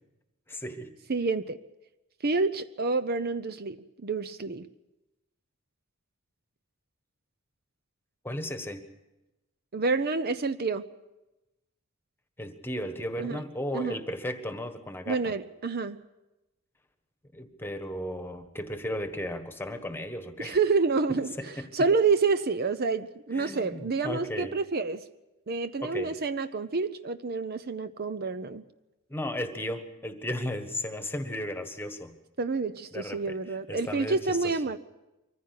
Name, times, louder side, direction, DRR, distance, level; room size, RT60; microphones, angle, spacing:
voice 1, 0.5-0.9 8.2-8.8 12.4-15.4 17.3-20.6 21.1-21.9 23.3-24.6 25.8-26.2 29.1-32.2 32.9-33.4 33.7-34.6, left 1 dB, 10° left, 8 dB, 1.4 m, -35 dB
voice 2, 1.1-1.6 2.2-4.7 9.7-10.9 13.2-13.4 13.7-14.0 15.1-16.0 20.4-25.0 25.5-28.6 32.4-34.8, right 4 dB, 45° right, 12 dB, 0.6 m, -28 dB
23.5 x 15.0 x 8.4 m, 0.99 s
head